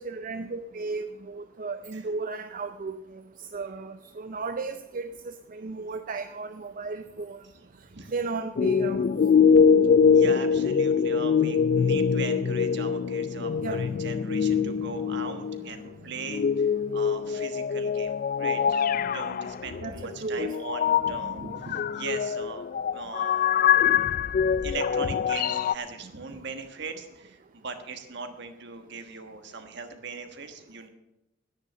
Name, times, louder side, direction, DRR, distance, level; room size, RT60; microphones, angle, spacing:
voice 1, 0.0-3.2 3.5-7.4 8.1-9.0 13.6-13.8 19.8-20.5 21.0-21.3, right 3 dB, 45° right, 9 dB, 0.5 m, -35 dB
sound 1, 8.6-15.7 16.2-25.7, left 6 dB, 45° left, 0.3 m, -24 dB
voice 2, 9.4-9.7 10.1-16.7 16.9-22.6 22.9-23.6 24.6-30.9, right 4 dB, 60° right, 7 dB, 1.3 m, -39 dB
10.5 x 10.0 x 6.5 m, 0.93 s
head